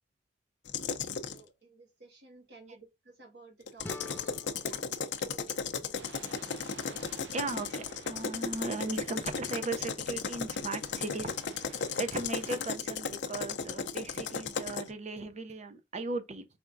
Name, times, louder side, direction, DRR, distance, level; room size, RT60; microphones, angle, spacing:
sound 1, 0.7-1.4 3.7-14.9, left 5 dB, 70° left, 0.5 m, -35 dB
voice 1, 1.3-4.2 4.7-4.8 5.2-6.4, right 3 dB, 65° right, 1.5 m, -55 dB
sound 2, 3.8-6.7, left 3 dB, 10° left, 0.4 m, -50 dB
sound 3, 5.9-12.7, right 4 dB, 85° right, 0.6 m, -53 dB
voice 2, 7.3-16.5, right 3 dB, 40° right, 0.5 m, -37 dB
4.8 x 3.5 x 2.5 m
head